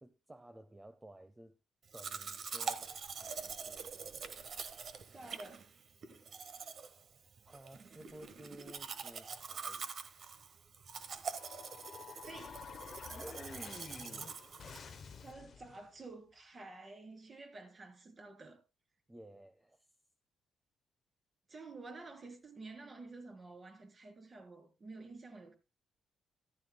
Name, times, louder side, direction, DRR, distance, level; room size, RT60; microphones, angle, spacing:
voice 1, 0.0-1.6 1.9-4.4 7.5-9.9 13.0-14.4 19.1-19.9, right 1 dB, 15° right, 0.8 m, -54 dB
Domestic sounds home sounds, 1.9-15.3, right 6 dB, 55° right, 1.3 m, -45 dB
voice 2, 5.1-5.7 12.3-12.6 15.2-18.6 21.5-25.5, right 3 dB, 35° right, 3.3 m, -50 dB
sound 1, 11.3-15.9, left 6 dB, 50° left, 0.8 m, -51 dB
14.0 x 13.0 x 2.2 m
cardioid pair, 90°, 0 cm